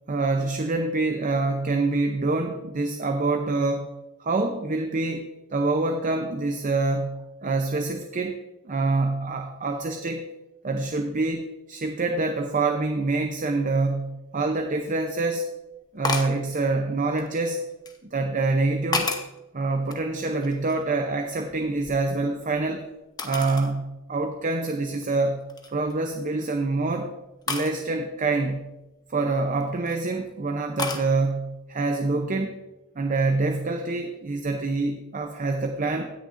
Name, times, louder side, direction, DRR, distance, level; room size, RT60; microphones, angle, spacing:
voice 1, 0.1-3.9 4.2-8.4 8.6-10.3 10.6-15.5 15.9-17.6 18.0-19.2 19.5-22.9 23.2-27.1 27.5-28.7 29.1-32.5 33.0-36.1, right 3 dB, 40° right, 5 dB, 0.6 m, -26 dB
sound 1, 16.0-16.4 17.2-18.0 18.6-19.4 19.9-20.9 21.2-22.5 23.2-23.7 24.2-24.3 24.9-25.2 25.5-25.9 27.5-27.7 29.4-29.9 30.8-31.1, left 3 dB, 20° left, 0.8 m, -31 dB
16.5 x 6.6 x 2.5 m, 0.99 s
head